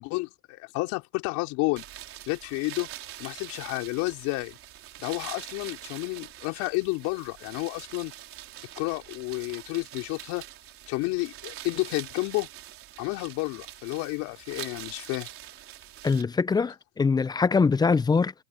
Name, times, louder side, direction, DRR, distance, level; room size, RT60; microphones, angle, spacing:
voice 1, 0.0-1.8 2.3-2.9 3.2-4.6 5.0-8.1 8.8-10.4 10.9-12.5 13.0-15.3, left 24 dB, 55° left, 4.4 m, -31 dB
sound 1, 1.8-16.2, right 13 dB, 40° right, 3.9 m, -44 dB
voice 2, 16.0-18.3, left 4 dB, 10° left, 0.7 m, -23 dB
supercardioid pair, 120°, 34 cm